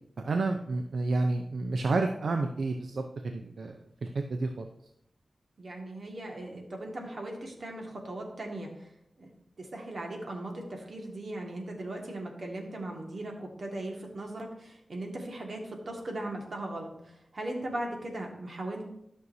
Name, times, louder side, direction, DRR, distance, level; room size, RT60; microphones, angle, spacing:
voice 1, 0.2-3.8 4.1-4.7, right 3 dB, 75° right, 5 dB, 0.5 m, -30 dB
voice 2, 5.6-8.9 9.2-9.3 9.6-18.8, right 1 dB, 55° right, 1 dB, 1.7 m, -38 dB
12.5 x 6.4 x 2.7 m, 0.76 s
wide cardioid pair, 100°, 0 cm